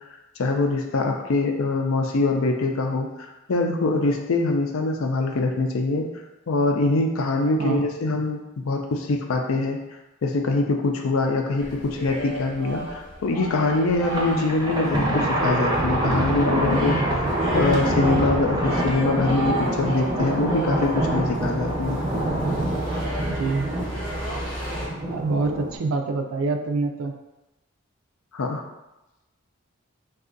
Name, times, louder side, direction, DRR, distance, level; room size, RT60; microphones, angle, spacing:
voice 1, 0.4-3.1 3.5-6.1 6.5-8.4 8.7-9.8 10.2-17.2 17.5-22.0 28.3-28.6, left 3 dB, 80° left, 3 dB, 0.5 m, -23 dB
sound 1, 11.6-24.9, right 1 dB, 25° left, 0.9 m, -34 dB
Thunder, 14.0-25.8, right 1 dB, 20° right, 0.5 m, -26 dB
voice 2, 14.4-14.8 23.3-23.7 25.1-27.1, right 3 dB, 80° right, 5 dB, 0.4 m, -26 dB
2.6 x 2.4 x 3.7 m, 0.99 s
head